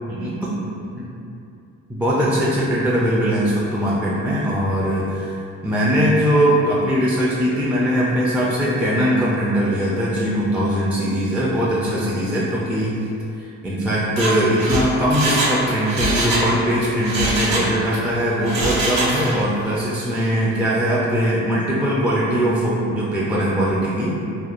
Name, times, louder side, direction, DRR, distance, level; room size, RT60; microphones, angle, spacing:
voice 1, 0.1-0.6 0.9-1.1 1.9-5.3 5.6-13.0 13.4-24.1, equal, 5° right, -7 dB, 0.3 m, -20 dB
Mechanisms, 14.0-16.5 16.8-18.0 18.4-19.5 19.8-19.9, right 2 dB, 60° right, 1.0 m, -23 dB
2.9 x 2.1 x 2.4 m, 2.6 s
cardioid pair, 90°, 30 cm